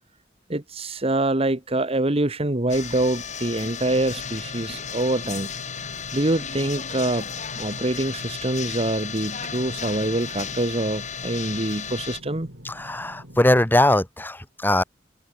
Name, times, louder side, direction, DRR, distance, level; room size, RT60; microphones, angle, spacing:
voice 1, 0.5-5.5 6.1-7.3 7.6-12.5, right 2 dB, 35° right, 1.5 m, -25 dB
sound 1, 2.7-12.2, left 7 dB, 40° left, 5.7 m, -34 dB
sound 2, 3.8-13.7, equal, 75° right, 6.9 m, -43 dB
voice 2, 12.6-14.8, left 1 dB, 10° left, 1.7 m, -20 dB
head